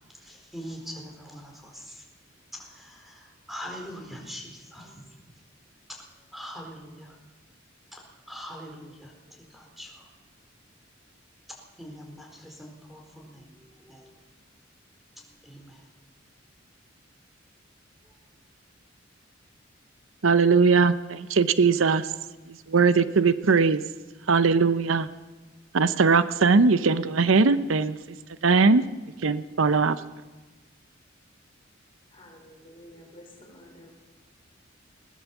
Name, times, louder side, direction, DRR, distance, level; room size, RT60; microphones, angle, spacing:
voice 1, 0.2-2.0 2.7-5.0 5.9-6.0 6.3-7.1 7.9-9.1 9.5-10.1 11.8-13.5 13.8-14.1 15.4-15.8, equal, ahead, 1 dB, 4.3 m, -42 dB
voice 2, 20.2-22.1 22.7-23.8 24.3-25.1 25.7-28.0 28.4-28.8 29.2-30.0, right 4 dB, 80° right, 13 dB, 0.7 m, -20 dB
voice 3, 32.1-33.9, left 1 dB, 25° left, 1 dB, 4.7 m, -50 dB
20.5 x 17.5 x 7.3 m, 1.2 s
head